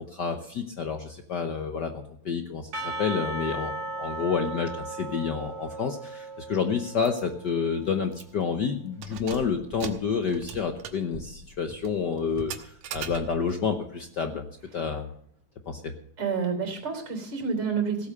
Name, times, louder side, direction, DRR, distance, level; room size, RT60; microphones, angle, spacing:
voice 1, 0.0-14.5 14.7-15.1 15.7-15.9, left 6 dB, 80° left, 6 dB, 0.9 m, -29 dB
Percussion / Church bell, 2.7-7.8, right 2 dB, 55° right, 2.6 m, -36 dB
Keys jangling, 7.0-7.2 7.6-7.7 8.1-8.5 8.9-13.6, right 7 dB, 80° right, 2.5 m, -41 dB
voice 2, 16.2-18.1, right 5 dB, 35° right, 4 dB, 4.0 m, -29 dB
17.0 x 8.3 x 6.7 m, 0.67 s
omnidirectional pair, 3.3 m